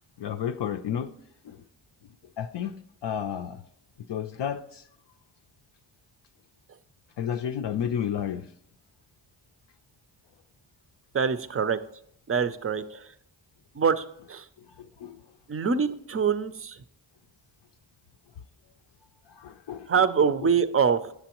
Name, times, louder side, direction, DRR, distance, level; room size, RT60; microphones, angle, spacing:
voice 1, 0.2-1.1 1.4-1.6 2.4-2.7 3.0-3.6 4.1-4.8 7.2-8.5 14.8-15.2 19.3-20.5, left 9 dB, 65° left, 6 dB, 0.5 m, -32 dB
voice 2, 11.1-11.8 12.3-13.0 13.8-14.4 15.5-16.8 19.9-21.1, right 6 dB, 30° right, 13 dB, 0.5 m, -24 dB
7.7 x 7.0 x 2.9 m, 0.70 s
cardioid pair, 45°, 46 cm